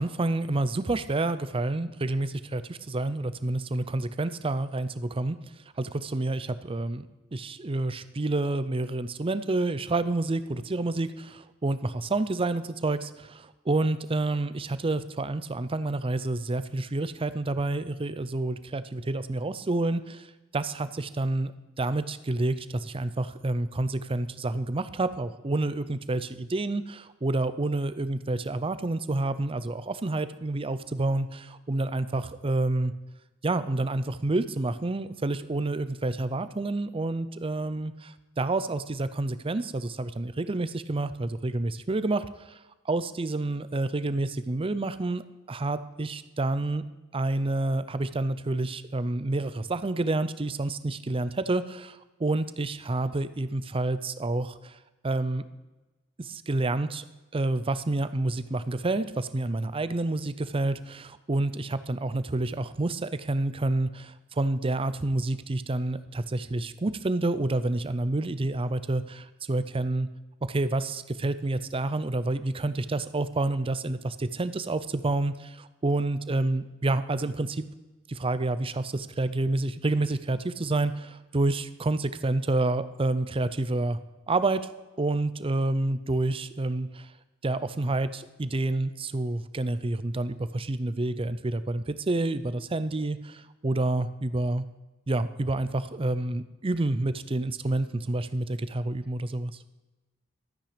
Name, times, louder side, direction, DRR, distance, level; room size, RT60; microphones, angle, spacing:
voice 1, 0.0-5.4 5.8-7.0 7.3-20.3 20.5-21.5 21.8-32.9 33.4-42.6 42.9-45.2 45.5-46.8 47.1-54.7 55.0-55.4 56.2-57.0 57.3-70.1 70.5-77.6 78.1-84.0 84.3-84.6 85.0-87.1 87.4-94.7 95.1-99.5, right 2 dB, 25° right, 13 dB, 0.6 m, -29 dB
13.0 x 9.1 x 5.0 m, 1.1 s
head